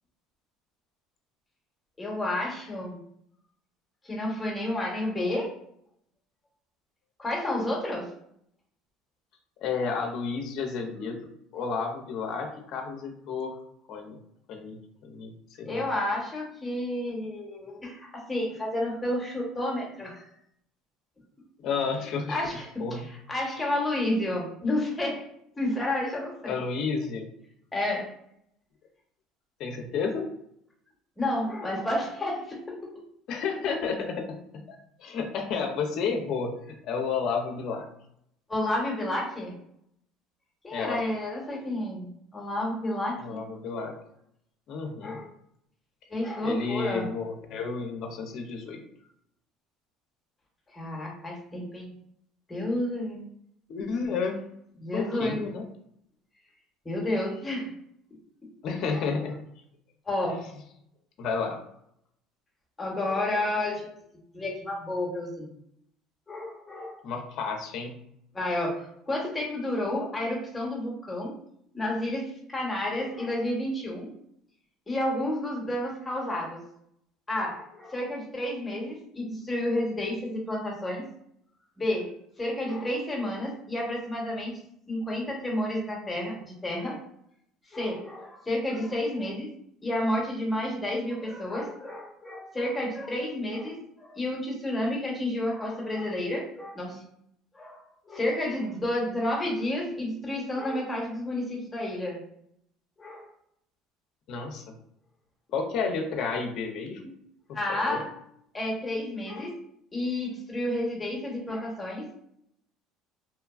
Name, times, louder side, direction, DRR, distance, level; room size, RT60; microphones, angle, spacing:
voice 1, 2.0-3.0 4.0-5.5 7.2-8.1 15.6-20.3 22.3-25.3 25.5-26.6 27.7-28.1 31.2-33.0 38.5-39.5 40.6-43.4 45.0-45.2 46.1-47.1 50.7-51.9 52.5-53.2 54.8-55.4 56.8-57.7 58.9-59.1 60.1-60.4 62.8-64.0 64.3-65.5 66.3-67.0 68.3-71.3 71.7-74.1 74.9-76.6 77.3-81.0 81.8-82.1 82.4-84.6 84.9-87.0 87.7-89.5 89.8-97.0 97.5-97.8 98.1-102.2 103.0-103.3 107.5-108.1 108.5-109.5 109.9-112.1, left 1 dB, 15° left, -2 dB, 0.9 m, -30 dB
voice 2, 9.6-11.2 11.5-13.6 13.9-14.2 14.5-15.8 21.6-22.4 22.8-23.0 26.5-27.3 29.6-30.3 33.3-34.3 34.5-36.5 36.8-37.9 40.7-41.0 43.2-44.0 44.7-45.2 46.4-48.8 53.7-54.4 54.9-55.6 58.6-59.4 60.2-60.4 61.2-61.6 67.0-68.0 104.3-104.6 105.5-107.1 107.5-108.0, left 5 dB, 60° left, 3 dB, 0.5 m, -31 dB
2.9 x 2.2 x 2.3 m, 0.73 s
supercardioid pair, 105°, 0 cm